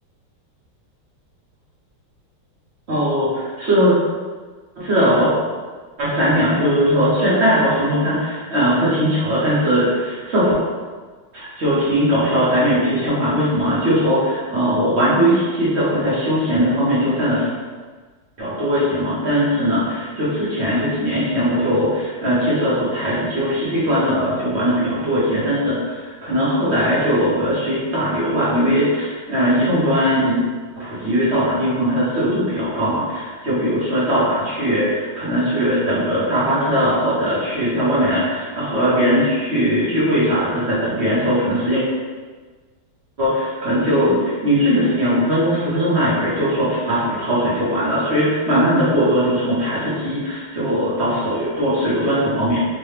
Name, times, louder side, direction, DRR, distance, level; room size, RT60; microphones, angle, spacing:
voice 1, 2.9-3.9 4.8-5.3 6.0-10.5 11.3-17.5 18.4-30.4 30.7-41.8 43.2-52.6, equal, 45° right, -8 dB, 1.0 m, -19 dB
4.2 x 2.3 x 3.3 m, 1.4 s
omnidirectional pair, 2.3 m